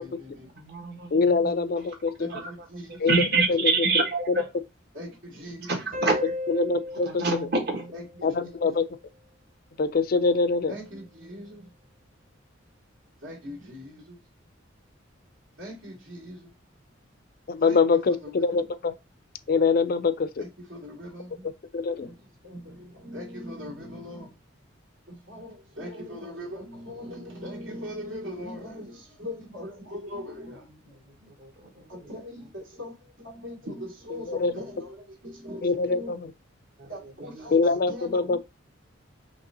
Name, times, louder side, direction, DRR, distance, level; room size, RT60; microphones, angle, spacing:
voice 1, 0.0-0.5 2.2-3.1 4.9-5.7 7.9-8.0 8.4-8.8 10.7-11.7 13.2-14.2 15.6-16.5 17.6-18.6 20.4-21.5 22.0-22.2 22.4-24.3 25.1-30.7 31.9-35.0 35.2-36.1 36.9-37.6 37.9-38.4, left 1 dB, 75° right, 2.5 m, -40 dB
voice 2, 0.5-1.7 2.3-4.5 5.6-6.1 7.0-8.1 25.8-26.5 30.7-32.5 33.6-33.8 36.8-37.8 38.2-38.4, right 3 dB, 55° right, 1.5 m, -29 dB
voice 3, 1.1-2.3 3.0-3.2 3.5-3.6 6.5-7.2 8.2-8.9 9.8-10.7 17.5-18.9 19.5-20.4 21.7-22.1 34.3-34.6 35.6-36.3 37.5-38.4, left 4 dB, 45° left, 0.4 m, -24 dB
sound 1, 5.9-9.1, left 2 dB, 40° right, 1.0 m, -36 dB
5.3 x 3.2 x 2.7 m
head